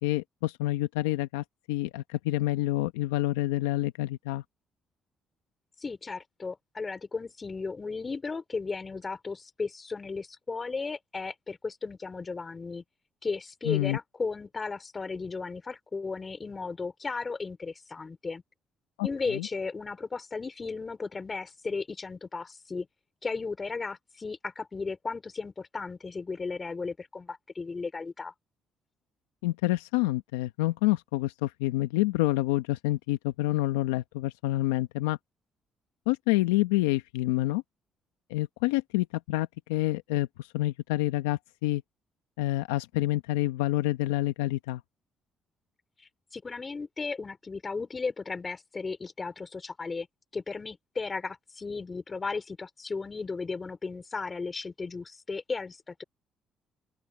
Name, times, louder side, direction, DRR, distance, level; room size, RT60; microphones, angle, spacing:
voice 1, 0.0-4.4 13.6-14.0 19.0-19.5 29.4-35.2 36.1-37.6 38.3-41.8 42.4-44.8, left 17 dB, 90° left, 0.9 m, -28 dB
voice 2, 5.8-12.8 13.2-18.4 19.0-22.9 23.2-28.3 46.3-50.1 50.3-56.0, left 4 dB, 35° left, 3.3 m, -35 dB
open air
hypercardioid pair, 55°, 0 cm